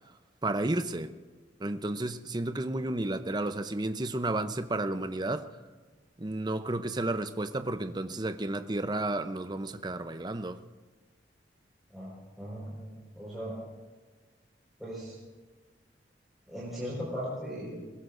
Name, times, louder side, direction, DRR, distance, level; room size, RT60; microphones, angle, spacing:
voice 1, 0.4-1.1 1.6-5.5 6.2-10.6, right 2 dB, 25° right, 0.7 m, -32 dB
voice 2, 12.4-13.5 14.8-15.2 16.5-17.8, equal, ahead, 4.9 m, -38 dB
22.0 x 21.0 x 2.6 m
head